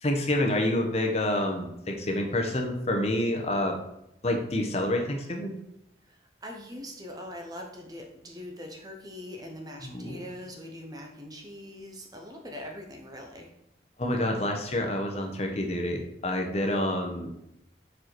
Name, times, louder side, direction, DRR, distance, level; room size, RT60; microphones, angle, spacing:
voice 1, 0.0-3.8 4.2-5.5 9.8-10.2 14.0-17.3, left 1 dB, 35° left, 2 dB, 0.8 m, -28 dB
voice 2, 6.1-13.5, left 1 dB, 20° right, 2 dB, 0.7 m, -42 dB
4.8 x 4.7 x 4.4 m, 0.82 s
head